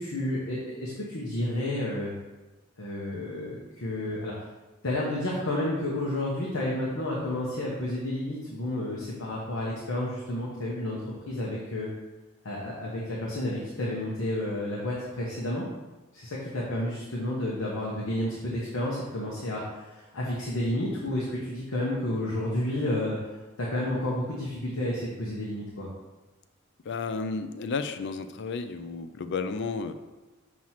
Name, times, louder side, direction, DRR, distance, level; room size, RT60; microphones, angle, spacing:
voice 1, 0.0-2.1 2.8-4.5 4.8-11.9 12.4-15.6 16.1-23.3 23.6-25.9, left 1 dB, 70° left, -4 dB, 1.0 m, -31 dB
voice 2, 26.9-29.9, left 4 dB, 55° left, 9 dB, 0.4 m, -32 dB
6.1 x 3.0 x 5.7 m, 1.2 s
head